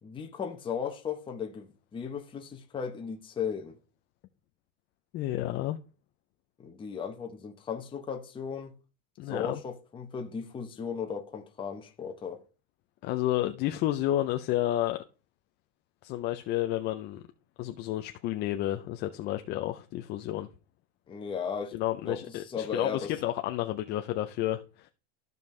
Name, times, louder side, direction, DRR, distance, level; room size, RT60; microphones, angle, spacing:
voice 1, 0.0-3.8 6.6-8.7 9.3-12.4 21.1-21.8 22.0-23.1, left 6 dB, 15° left, 0.8 m, -36 dB
voice 2, 5.1-5.8 9.2-9.6 13.0-15.0 16.0-17.2 17.6-20.5 21.7-24.9, left 14 dB, 30° left, 0.4 m, -31 dB
14.0 x 5.3 x 3.2 m
supercardioid pair, 145°, 38 cm